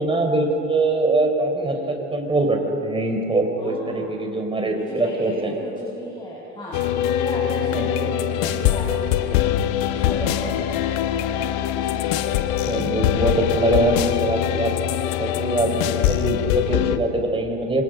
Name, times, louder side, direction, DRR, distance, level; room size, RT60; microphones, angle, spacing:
voice 1, 0.0-5.5 7.7-7.9 12.6-14.7 15.2-17.8, right 2 dB, 15° right, 3 dB, 5.0 m, -23 dB
voice 2, 3.6-4.1 4.7-9.5 9.9-11.2 11.7-12.3, equal, 10° left, -5 dB, 7.0 m, -35 dB
sound 1, 6.7-17.0, left 11 dB, 55° left, 1.5 m, -23 dB
27.5 x 26.5 x 5.4 m, 3.0 s
hypercardioid pair, 85°, 36 cm